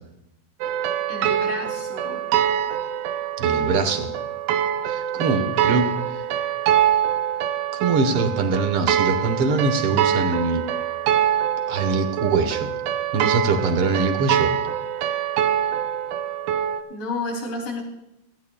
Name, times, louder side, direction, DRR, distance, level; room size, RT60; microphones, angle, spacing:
sound 1, 0.6-16.8, right 10 dB, 85° right, 2.1 m, -24 dB
voice 1, 1.1-2.2 5.1-5.7 16.9-17.8, left 2 dB, 85° left, 1 dB, 4.5 m, -32 dB
voice 2, 3.4-4.1 4.9-5.9 6.1-6.2 7.7-10.6 11.7-12.7 13.1-14.5, right 4 dB, 60° right, 7 dB, 1.7 m, -23 dB
17.5 x 15.0 x 2.3 m, 0.89 s
omnidirectional pair, 3.6 m